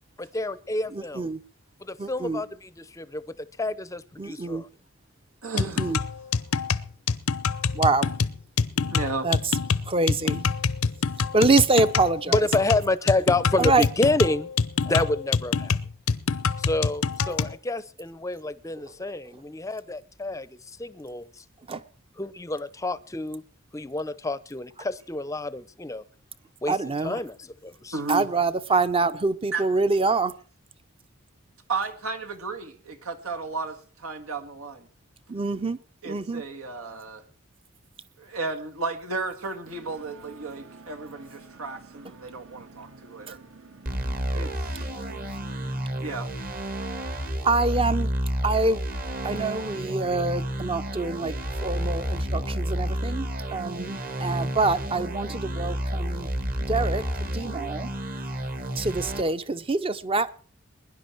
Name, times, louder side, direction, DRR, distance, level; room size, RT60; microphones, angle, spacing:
voice 1, 0.2-1.3 1.8-4.7 12.3-14.5 14.8-15.8 16.6-21.4 22.2-23.4 23.7-26.0 26.6-26.8 27.0-28.0, left 2 dB, 15° left, 0.6 m, -28 dB
voice 2, 0.9-1.4 2.0-2.4 4.2-4.6 5.6-6.0 7.7-8.1 9.2-9.4 9.9-10.5 11.3-12.5 13.6-13.9 19.3-19.4 21.7-21.8 26.7-27.2 28.1-30.3 35.3-35.8 36.1-36.4 47.4-48.1 48.4-48.8 49.2-51.4 51.6-56.3 56.7-57.9 58.8-60.3, right 3 dB, 25° right, 0.7 m, -25 dB
voice 3, 5.4-6.0 8.8-9.3 27.9-28.3 29.5-29.6 31.7-34.9 36.0-37.2 38.2-43.4 44.3-44.9 46.0-46.3, right 3 dB, 80° right, 1.9 m, -34 dB
sound 1, 5.6-17.6, left 5 dB, 80° left, 0.7 m, -26 dB
sound 2, 39.6-46.1, right 4 dB, 65° right, 1.6 m, -50 dB
sound 3, 43.9-59.2, equal, 45° right, 1.8 m, -30 dB
21.0 x 11.0 x 4.6 m
head